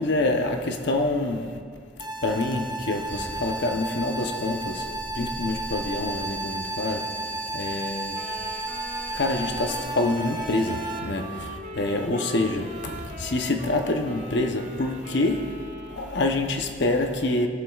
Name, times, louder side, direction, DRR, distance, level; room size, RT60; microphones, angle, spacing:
voice 1, 0.0-1.5 2.2-7.1 7.5-8.3 9.1-15.6 15.9-17.5, left 2 dB, 55° left, 0.8 m, -26 dB
sound 1, 2.0-11.0, right 2 dB, 20° right, 0.6 m, -34 dB
sound 2, 3.1-9.8, right 2 dB, 15° left, 1.8 m, -37 dB
Wind instrument woodwind instrument, 8.1-16.6, right 1 dB, 50° right, 2.3 m, -41 dB
19.0 x 7.3 x 2.4 m
head